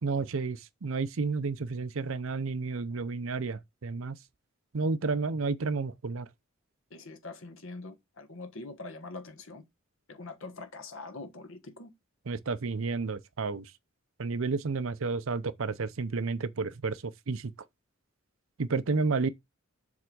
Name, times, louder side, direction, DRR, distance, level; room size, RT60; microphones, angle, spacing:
voice 1, 0.0-4.2 4.7-6.3 12.3-13.7 14.2-17.5 18.6-19.3, right 4 dB, 70° right, 0.6 m, -31 dB
voice 2, 6.9-9.6 10.1-11.9, left 3 dB, 65° left, 1.3 m, -43 dB
7.2 x 3.5 x 6.2 m
head